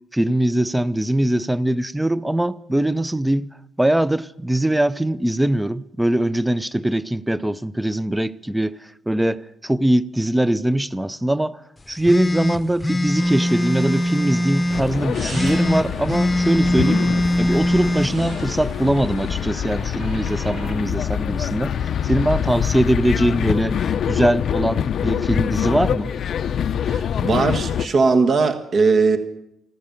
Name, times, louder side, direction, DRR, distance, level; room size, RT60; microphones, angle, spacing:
voice 1, 0.1-3.5 3.8-8.8 9.1-11.6 11.9-17.0 17.4-21.7 22.0-26.1, right 1 dB, 5° right, 0.6 m, -21 dB
sound 1, 12.1-14.9 15.3-18.1, left 1 dB, 15° left, 0.9 m, -21 dB
sound 2, 13.1-20.8, right 2 dB, 65° right, 7.3 m, -39 dB
sound 3, 14.7-27.9, left 8 dB, 60° left, 0.6 m, -25 dB
voice 2, 26.8-29.2, right 4 dB, 50° right, 1.5 m, -19 dB
15.0 x 13.5 x 7.1 m
cardioid pair, 90°, 0 cm